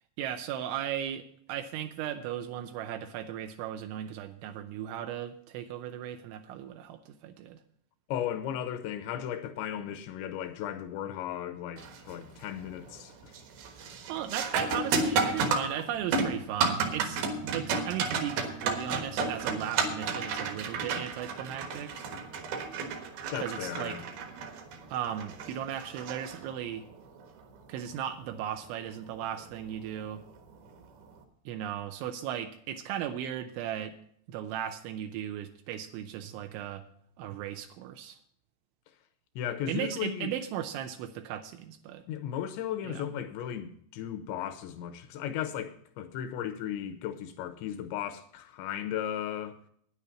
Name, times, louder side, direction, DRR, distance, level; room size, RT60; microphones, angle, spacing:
voice 1, 0.2-7.6 13.8-22.0 23.4-24.0 24.9-26.8 27.7-30.2 31.5-34.0 34.3-36.9 37.2-38.2 39.7-42.0 42.8-43.1, right 10 dB, 80° right, 3.0 m, -36 dB
voice 2, 8.1-13.4 23.3-24.0 39.4-40.3 42.1-49.6, left 10 dB, 80° left, 2.8 m, -36 dB
sound 1, 11.8-12.2 12.6-13.0 13.3-26.9 29.4-29.5 30.3-30.5, right 4 dB, 65° right, 2.8 m, -32 dB
9.8 x 9.7 x 5.8 m
omnidirectional pair, 5.6 m